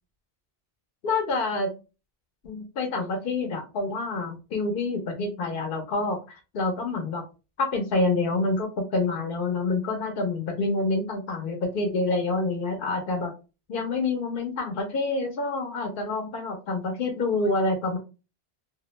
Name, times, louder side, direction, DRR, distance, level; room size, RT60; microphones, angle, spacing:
voice 1, 1.0-1.7 2.4-7.2 7.6-13.3 13.7-18.0, left 3 dB, 60° left, 3 dB, 0.7 m, -27 dB
2.2 x 2.0 x 3.0 m, 0.30 s
omnidirectional pair, 1.1 m